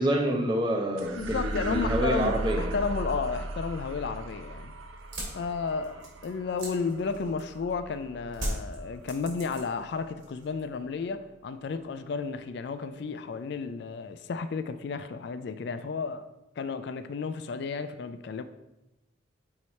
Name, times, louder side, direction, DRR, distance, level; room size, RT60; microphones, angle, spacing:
voice 1, 0.0-2.7, right 1 dB, 20° right, 1 dB, 0.7 m, -27 dB
sound 1, 1.0-9.6, right 2 dB, 85° right, 0.6 m, -37 dB
voice 2, 1.1-4.7 5.3-16.3 16.6-18.4, left 5 dB, 55° left, 10 dB, 0.3 m, -33 dB
sound 2, 5.0-7.7 8.3-9.9 10.2-10.7, right 1 dB, 65° right, 2.2 m, -37 dB
5.5 x 4.8 x 4.1 m, 0.94 s
head